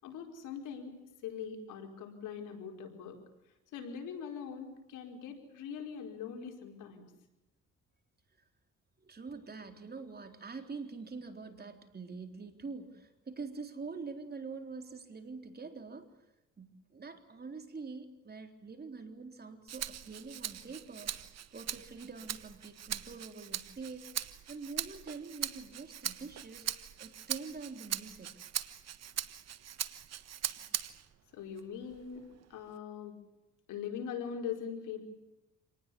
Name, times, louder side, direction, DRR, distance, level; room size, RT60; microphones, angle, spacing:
voice 1, 0.0-3.2 3.7-7.0 31.3-33.1 33.7-35.0, left 7 dB, 90° left, 3 dB, 5.0 m, -42 dB
voice 2, 9.0-16.1 16.6-21.2 21.5-24.0 24.5-26.7 27.0-28.3, right 4 dB, 30° right, 6 dB, 3.8 m, -45 dB
Rattle (instrument), 19.7-31.1 31.6-32.8, right 10 dB, 60° right, 1.4 m, -40 dB
27.5 x 19.5 x 8.6 m, 0.97 s
cardioid pair, 90°, 30 cm